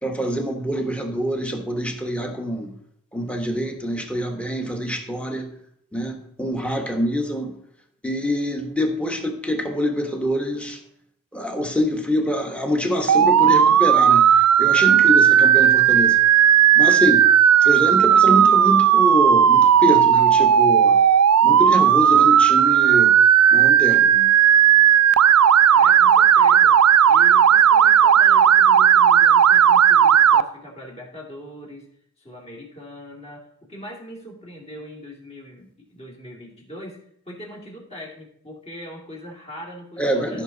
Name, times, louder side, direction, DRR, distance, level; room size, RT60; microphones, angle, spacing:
voice 1, 0.0-2.7 3.1-5.5 5.9-7.5 8.0-10.8 11.3-16.2 16.7-17.2 17.6-21.0 21.4-23.1 23.5-24.3 40.0-40.4, equal, 5° left, 3 dB, 1.3 m, -25 dB
Motor vehicle (road) / Siren, 13.1-30.4, right 9 dB, 80° right, 0.4 m, -14 dB
voice 2, 25.7-26.8 27.1-31.9 32.2-40.4, left 1 dB, 30° left, 0 dB, 2.4 m, -40 dB
14.0 x 5.9 x 4.0 m, 0.69 s
head